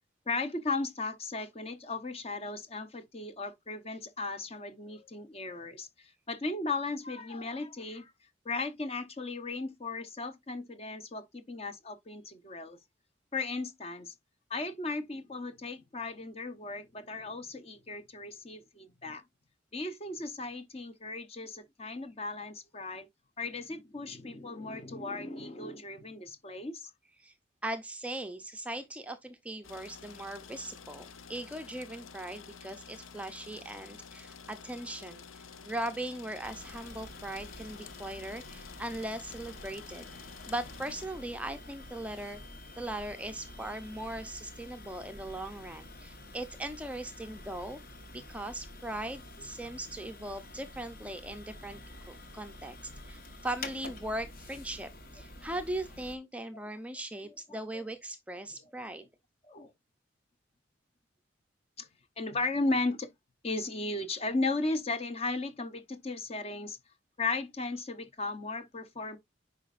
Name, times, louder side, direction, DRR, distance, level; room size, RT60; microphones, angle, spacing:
voice 1, 0.3-8.1 8.4-12.8 13.3-14.1 14.5-19.2 19.7-23.1 23.4-26.9 57.5-57.8 59.5-59.7 61.8-61.9 62.2-63.1 63.4-66.8 67.2-69.2, left 3 dB, 30° left, 0.8 m, -36 dB
voice 2, 27.6-42.4 42.8-47.8 48.1-51.8 52.1-59.0, right 1 dB, 5° right, 0.5 m, -39 dB
sound 1, 29.6-41.1, left 6 dB, 90° left, 0.7 m, -50 dB
sound 2, 36.4-56.1, left 2 dB, 45° left, 1.1 m, -48 dB
9.6 x 5.1 x 2.5 m
head